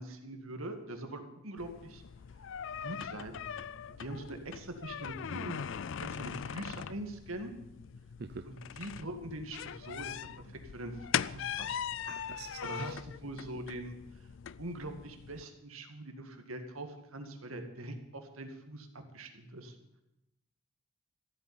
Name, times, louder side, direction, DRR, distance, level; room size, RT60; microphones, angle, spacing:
voice 1, 0.0-2.0 2.8-3.4 4.0-5.6 6.0-7.5 8.4-10.5 10.7-11.0 11.2-11.8 12.6-13.9 14.6-19.8, right 1 dB, 80° right, 6 dB, 2.0 m, -43 dB
sound 1, 1.6-15.4, left 8 dB, 60° left, 0.4 m, -40 dB
voice 2, 12.1-12.9, right 4 dB, 50° right, 9 dB, 0.5 m, -45 dB
14.5 x 8.3 x 8.8 m, 0.89 s
head